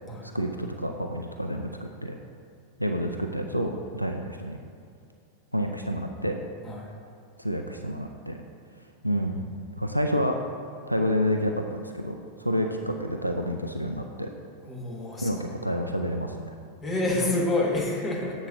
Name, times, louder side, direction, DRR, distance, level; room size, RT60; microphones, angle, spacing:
voice 1, 0.2-2.2 2.8-4.6 5.5-6.4 7.4-8.4 9.0-9.5 9.8-10.4 10.9-12.1 12.4-14.3 15.2-16.5, equal, 90° left, 4 dB, 0.4 m, -29 dB
voice 2, 14.6-15.4 16.8-18.5, left 2 dB, 20° left, -2 dB, 1.7 m, -28 dB
10.0 x 7.5 x 2.7 m, 2.4 s
figure-of-eight pair, 90°, 0 cm